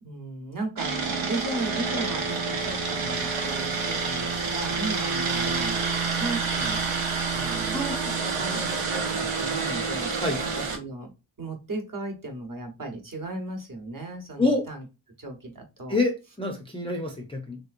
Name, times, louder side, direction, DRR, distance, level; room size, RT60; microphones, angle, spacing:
voice 1, 0.0-6.8 7.3-7.8 8.2-11.1 11.4-14.8 15.2-16.0, right 2 dB, 40° right, 1.0 m, -36 dB
sound 1, 0.8-10.8, right 4 dB, 85° right, 0.9 m, -28 dB
voice 2, 7.7-8.4 10.2-10.4 14.4-14.7 15.9-17.6, left 2 dB, 10° left, 0.4 m, -27 dB
3.2 x 2.9 x 2.5 m
wide cardioid pair, 110°, 48 cm